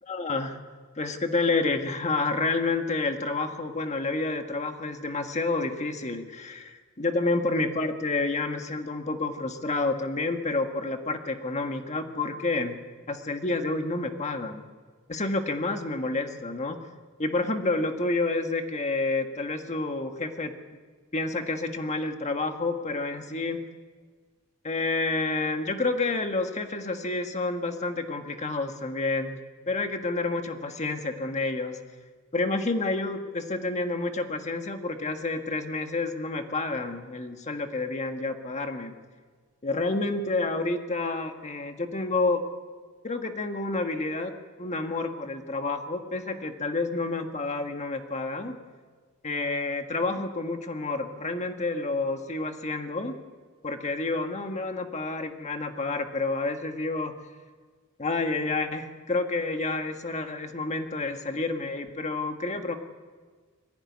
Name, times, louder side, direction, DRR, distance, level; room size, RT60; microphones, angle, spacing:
voice 1, 0.1-0.6 1.0-12.8 13.1-14.6 15.1-16.8 17.2-20.5 21.1-23.6 24.6-29.4 29.7-31.8 32.3-38.9 39.6-42.4 43.0-44.3 44.6-48.6 49.2-53.2 53.6-57.1 58.0-62.7, left 3 dB, 30° left, 5 dB, 1.6 m, -29 dB
21.5 x 15.5 x 9.7 m, 1.5 s
head